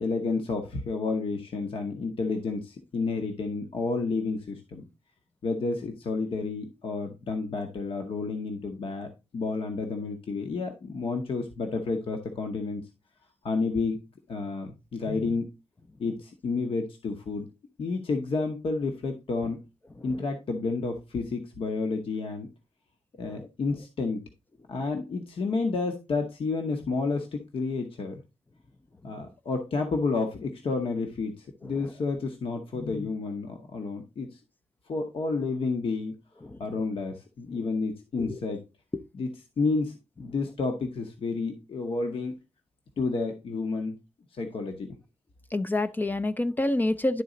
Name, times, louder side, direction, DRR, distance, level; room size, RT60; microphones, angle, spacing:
voice 1, 0.0-4.8 5.4-12.8 13.4-14.0 14.3-15.5 16.0-17.5 17.8-19.6 20.0-22.5 23.2-24.2 24.7-28.1 29.0-34.4 34.9-36.2 36.6-38.6 39.1-42.3 43.0-44.0 44.3-45.0, left 3 dB, 60° left, 0.9 m, -30 dB
voice 2, 45.5-47.2, left 2 dB, 15° left, 0.4 m, -27 dB
11.0 x 4.1 x 3.8 m
wide cardioid pair, 175°, 11 cm